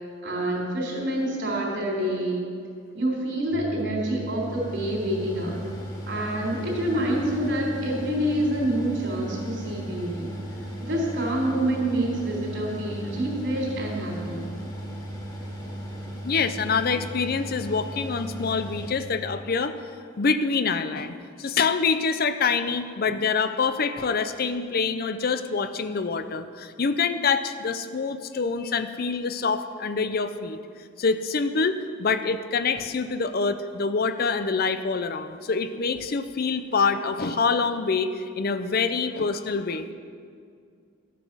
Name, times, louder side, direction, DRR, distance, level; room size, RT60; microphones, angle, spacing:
voice 1, 0.2-2.4 2.9-5.5 6.1-10.3 10.8-14.5, right 1 dB, 65° right, -3 dB, 3.9 m, -27 dB
Mechanical fan, 3.5-18.9, equal, 20° left, 2.1 m, -36 dB
voice 2, 16.2-19.8 20.2-30.6 31.0-39.9, left 5 dB, 50° left, 10 dB, 0.6 m, -26 dB
13.5 x 9.2 x 6.2 m, 2.3 s
head